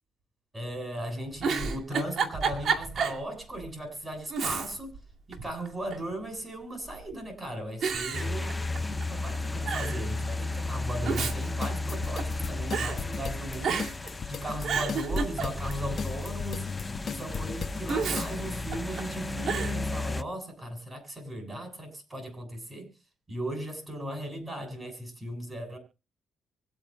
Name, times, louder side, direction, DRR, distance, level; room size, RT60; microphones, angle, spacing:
voice 1, 0.5-4.9 5.3-16.7 17.1-22.9 23.3-25.8, right 1 dB, 20° right, 7.9 m, -37 dB
Giggle, 1.4-3.2 3.6-3.7 4.3-5.0 5.3-6.1 6.9-7.3 7.8-9.0 9.3-9.4 9.7-10.0 10.8-12.4 12.7-13.0 13.6-14.1 14.5-15.8 17.9-19.0 19.5-19.8, right 5 dB, 60° right, 2.5 m, -31 dB
sound 1, 8.1-20.2, left 2 dB, 20° left, 0.7 m, -34 dB
sound 2, 11.6-18.3, left 6 dB, 50° left, 0.9 m, -38 dB
25.0 x 8.7 x 2.2 m
cardioid pair, 90°, 0 cm